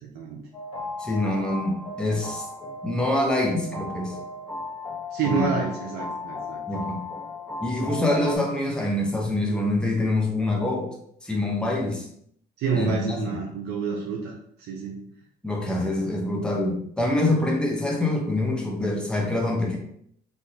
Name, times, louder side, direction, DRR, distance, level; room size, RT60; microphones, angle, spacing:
sound 1, 0.5-8.4, left 2 dB, 35° left, 1.3 m, -36 dB
voice 1, 1.0-2.4 2.8-4.2 5.3-5.5 6.7-7.0 7.6-10.9 11.2-12.1 12.7-13.4 15.4-19.8, left 2 dB, 5° left, -1 dB, 0.8 m, -25 dB
voice 2, 5.1-6.6 8.1-8.2 12.6-14.3 14.7-15.0 15.8-15.9, right 5 dB, 75° right, -2 dB, 0.6 m, -28 dB
3.5 x 2.5 x 2.8 m, 0.68 s
cardioid pair, 110°, 17 cm